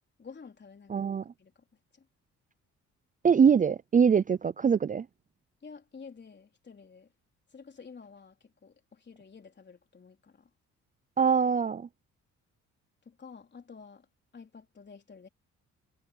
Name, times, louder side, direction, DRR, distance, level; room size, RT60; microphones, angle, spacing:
voice 1, 0.2-1.1 1.4-1.6 1.9-2.1 5.6-7.1 7.5-10.5 13.0-14.1 14.3-15.3, left 5 dB, 35° left, 4.1 m, -50 dB
voice 2, 0.9-1.2 3.2-5.1 11.2-11.9, right 6 dB, 25° right, 0.5 m, -23 dB
cardioid pair, 90°, 30 cm